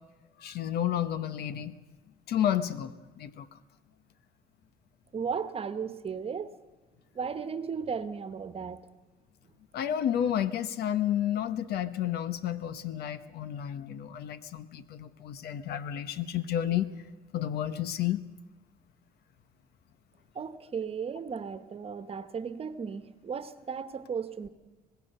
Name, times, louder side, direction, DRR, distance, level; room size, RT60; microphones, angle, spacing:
voice 1, 0.4-1.8 2.3-3.5 9.7-16.9 17.3-18.2, left 10 dB, 70° left, 14 dB, 1.1 m, -31 dB
voice 2, 5.1-6.5 7.1-8.8 20.3-24.5, right 6 dB, 35° right, 12 dB, 1.3 m, -35 dB
25.5 x 19.0 x 6.7 m, 1.2 s
cardioid pair, 110°, 17 cm